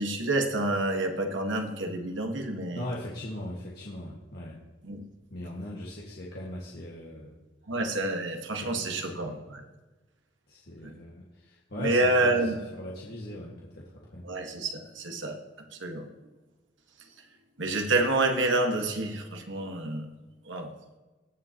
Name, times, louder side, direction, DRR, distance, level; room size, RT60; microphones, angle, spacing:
voice 1, 0.0-2.8 4.8-5.0 7.7-9.6 10.8-10.9 11.8-12.6 14.2-15.4 15.8-16.1 17.6-20.1 20.5-20.7, right 2 dB, 85° right, 4 dB, 1.6 m, -28 dB
voice 2, 2.7-4.6 5.3-7.4 8.6-9.4 10.5-14.3, left 1 dB, 60° left, -4 dB, 1.8 m, -39 dB
21.0 x 7.5 x 3.0 m, 1.2 s
head